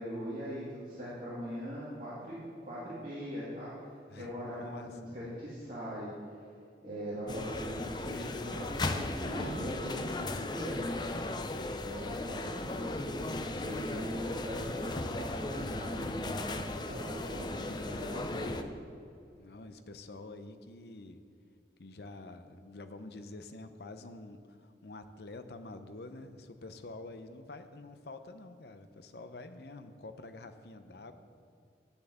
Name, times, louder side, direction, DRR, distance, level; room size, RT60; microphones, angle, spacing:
voice 1, 0.0-3.7 4.1-6.1 6.8-11.3 11.8-18.6, equal, 50° right, -10 dB, 2.5 m, -40 dB
voice 2, 4.1-5.1 19.4-21.2 21.8-31.1, left 2 dB, 65° left, 9 dB, 0.7 m, -47 dB
sound 1, 7.3-18.6, left 2 dB, 25° left, 0.5 m, -37 dB
9.4 x 7.1 x 7.8 m, 2.5 s
head